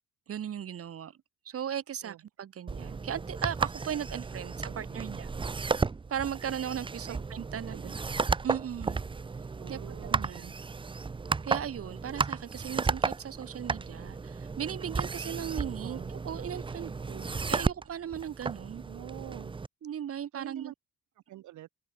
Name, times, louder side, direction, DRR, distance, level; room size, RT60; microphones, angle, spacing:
voice 1, 0.3-1.2 1.4-5.3 6.1-7.9 8.4-9.0 9.7-10.5 11.4-18.8 19.8-20.7, right 9 dB, 50° right, 1.1 m, -37 dB
sound 1, 2.7-19.7, right 4 dB, 15° right, 0.5 m, -34 dB
voice 2, 4.6-5.1 7.1-7.2 7.5-8.0 9.6-10.6 15.7-16.1 18.8-19.5 20.3-20.7 21.3-21.7, right 14 dB, 75° right, 0.9 m, -47 dB
cardioid pair, 90°, 30 cm